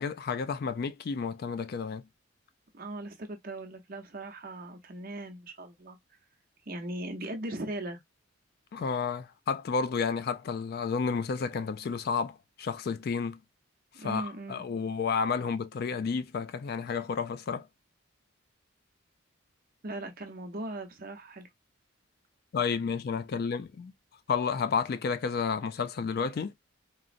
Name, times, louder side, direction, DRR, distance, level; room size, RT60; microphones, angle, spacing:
voice 1, 0.0-2.0 8.7-13.4 14.0-17.6 22.5-23.9 24.3-26.5, left 5 dB, 50° left, 0.3 m, -31 dB
voice 2, 2.7-6.0 6.7-8.0 13.9-14.6 19.8-21.5, right 1 dB, 45° right, 0.7 m, -39 dB
3.8 x 2.0 x 2.4 m
head